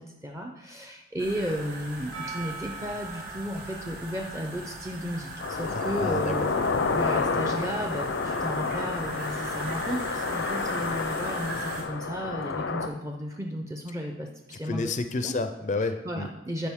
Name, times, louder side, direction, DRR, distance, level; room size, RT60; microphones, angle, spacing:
voice 1, 0.0-14.9 15.2-15.3 16.0-16.7, equal, 15° right, 2 dB, 0.5 m, -34 dB
sound 1, 1.2-11.8, right 2 dB, 50° right, 1.5 m, -40 dB
Percussion, 2.1-7.1, right 5 dB, 80° right, 2.5 m, -45 dB
sound 2, 5.4-12.9, left 4 dB, 85° left, 0.6 m, -29 dB
voice 2, 5.7-6.5 14.6-16.3, left 3 dB, 40° left, 9 dB, 0.4 m, -30 dB
12.5 x 4.8 x 3.6 m, 0.98 s
head